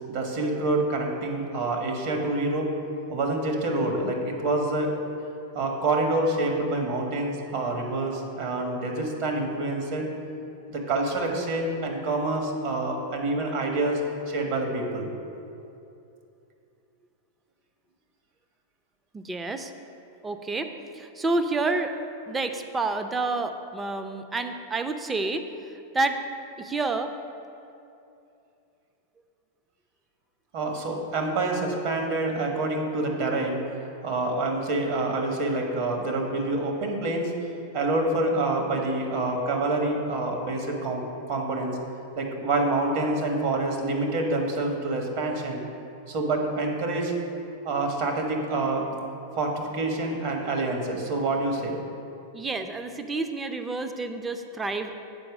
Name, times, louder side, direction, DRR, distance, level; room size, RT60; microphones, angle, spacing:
voice 1, 0.1-2.7 3.1-4.9 5.5-10.1 10.7-14.0 14.3-15.1 30.5-33.6 34.0-37.3 37.7-41.8 42.2-45.6 46.1-47.1 47.6-48.9 49.3-51.8 53.9-54.0, right 2 dB, 60° right, 2 dB, 1.4 m, -27 dB
voice 2, 19.1-19.7 20.2-21.9 22.3-25.4 25.9-26.2 26.6-27.1 52.3-54.9, right 3 dB, 15° right, 7 dB, 0.6 m, -29 dB
7.7 x 4.6 x 6.1 m, 2.7 s
hypercardioid pair, 105°, 0 cm